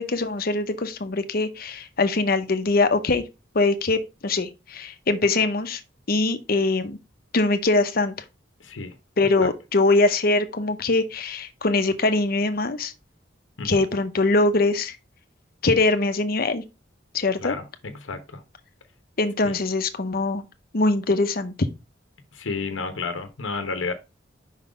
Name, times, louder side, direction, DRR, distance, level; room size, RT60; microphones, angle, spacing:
voice 1, 0.0-3.3 3.5-5.8 6.1-7.0 7.3-8.1 9.2-12.9 13.6-15.0 15.6-16.6 17.1-17.5 19.2-20.4 20.7-21.5, left 3 dB, 50° left, 0.8 m, -22 dB
voice 2, 8.6-8.9 9.4-9.5 13.6-13.8 17.4-17.6 18.0-18.4 19.4-19.6 22.3-23.9, left 4 dB, 85° left, 0.9 m, -31 dB
5.5 x 3.9 x 5.0 m
head